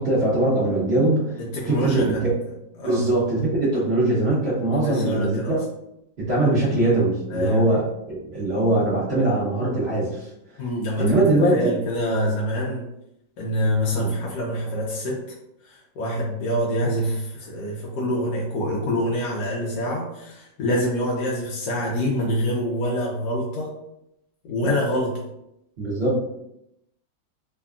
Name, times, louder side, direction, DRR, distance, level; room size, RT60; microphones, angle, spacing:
voice 1, 0.0-1.4 1.7-2.3 2.8-5.6 6.2-10.3 11.0-11.7 13.9-14.1 25.8-26.2, right 2 dB, 40° right, -13 dB, 0.9 m, -22 dB
voice 2, 1.4-2.3 2.8-3.1 3.7-3.9 4.8-5.6 7.3-7.7 10.6-12.9 13.4-15.2 15.6-23.7 24.4-25.2, equal, 70° left, -4 dB, 1.1 m, -25 dB
3.4 x 2.2 x 2.4 m, 0.82 s
omnidirectional pair, 2.1 m